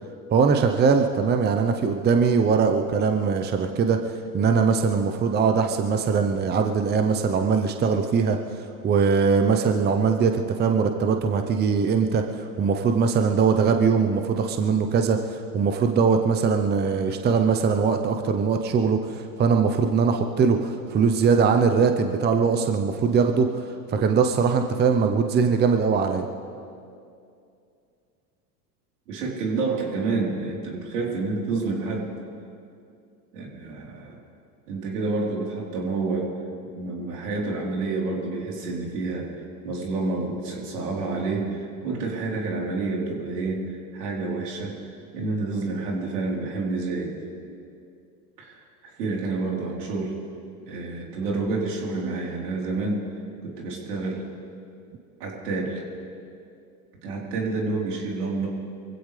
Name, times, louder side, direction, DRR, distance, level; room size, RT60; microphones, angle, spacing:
voice 1, 0.3-4.0 4.3-8.4 8.8-15.2 15.5-23.5 23.9-26.3, right 5 dB, 20° right, 5 dB, 0.8 m, -21 dB
voice 2, 29.1-32.1 33.3-34.2 34.7-36.3 36.7-39.3 39.6-44.8 45.1-47.1 48.4-50.2 50.7-53.1 53.4-54.3 55.2-55.8 57.0-58.5, right 3 dB, 75° right, -2 dB, 4.1 m, -29 dB
23.5 x 16.0 x 3.4 m, 2.5 s
hypercardioid pair, 100°, 47 cm